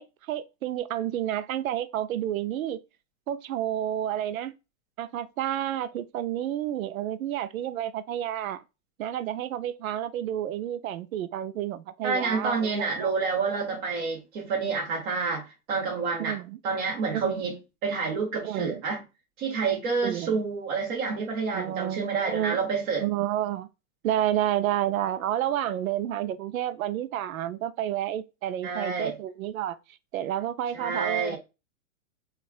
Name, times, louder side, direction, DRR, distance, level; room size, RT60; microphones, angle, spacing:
voice 1, 0.0-2.8 3.3-4.5 5.0-8.6 9.0-13.1 16.2-16.6 17.1-17.3 18.4-18.8 20.0-20.4 21.5-22.6 23.0-23.7 24.0-29.8 30.1-31.4, right 11 dB, 80° right, 0.6 m, -30 dB
voice 2, 12.0-15.4 15.7-16.4 16.6-19.0 19.4-23.0 28.6-29.1 30.7-31.4, right 4 dB, 35° right, 1.3 m, -28 dB
4.2 x 2.4 x 2.3 m
hypercardioid pair, 165°, 41 cm